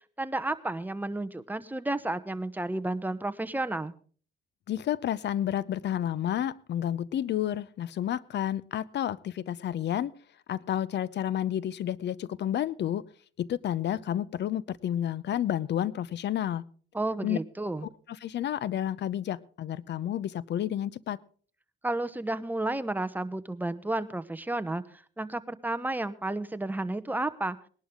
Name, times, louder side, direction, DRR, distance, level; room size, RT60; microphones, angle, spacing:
voice 1, 0.2-3.9 16.9-17.9 21.8-27.6, right 2 dB, 10° right, 11 dB, 0.9 m, -32 dB
voice 2, 4.7-10.1 10.5-13.0 13.4-16.6 17.2-17.4 18.1-21.2, left 11 dB, 60° left, 21 dB, 0.6 m, -30 dB
19.5 x 11.0 x 3.7 m, 0.43 s
cardioid pair, 90°, 20 cm